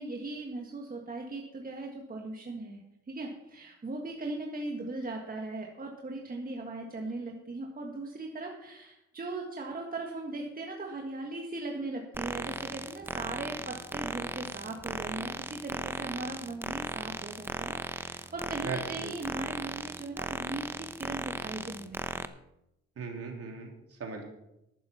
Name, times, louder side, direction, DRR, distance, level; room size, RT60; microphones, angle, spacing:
voice 1, 0.0-2.8 3.1-22.0 22.2-22.3, right 2 dB, 30° right, 1 dB, 1.7 m, -39 dB
sound 1, 12.1-22.3, right 1 dB, 5° right, 0.7 m, -37 dB
voice 2, 18.6-19.1 23.0-24.2, right 4 dB, 50° right, 2 dB, 3.1 m, -38 dB
11.5 x 9.3 x 5.7 m, 0.87 s
cardioid pair, 90°, 30 cm